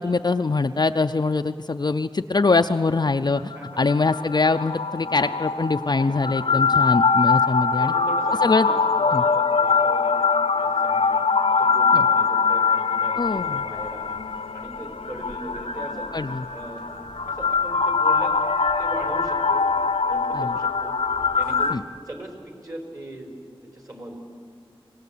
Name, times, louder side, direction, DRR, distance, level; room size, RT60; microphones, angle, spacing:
voice 1, 0.0-7.9 8.4-8.7 9.1-9.2 11.9-12.1 13.2-13.6 16.1-16.4 20.3-20.5 21.7-21.8, left 3 dB, 45° left, 7 dB, 0.5 m, -23 dB
sound 1, 3.4-21.8, left 5 dB, 80° left, 0.8 m, -23 dB
voice 2, 5.0-5.3 6.3-6.8 7.8-11.2 11.6-14.2 14.5-16.1 16.5-16.9 17.3-18.4 18.8-19.7 20.0-21.0 21.3-23.3 23.6-24.2, right 1 dB, 40° right, 3 dB, 4.3 m, -39 dB
sound 2, 13.1-21.7, equal, 60° right, 6.3 m, -50 dB
24.5 x 19.0 x 8.4 m, 2.3 s
wide cardioid pair, 65°, 10 cm